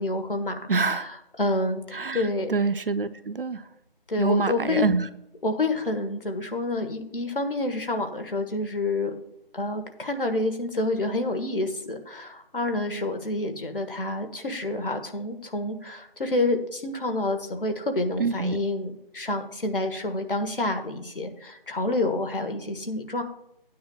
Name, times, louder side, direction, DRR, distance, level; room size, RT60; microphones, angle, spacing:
voice 1, 0.0-2.5 4.1-4.9 5.4-9.1 9.5-23.2, left 2 dB, 65° left, 6 dB, 1.5 m, -28 dB
voice 2, 0.7-1.1 1.9-3.6 4.2-5.1 18.2-18.6, right 4 dB, 65° right, 12 dB, 0.8 m, -26 dB
13.0 x 9.3 x 2.4 m, 0.79 s
figure-of-eight pair, 170°, 29 cm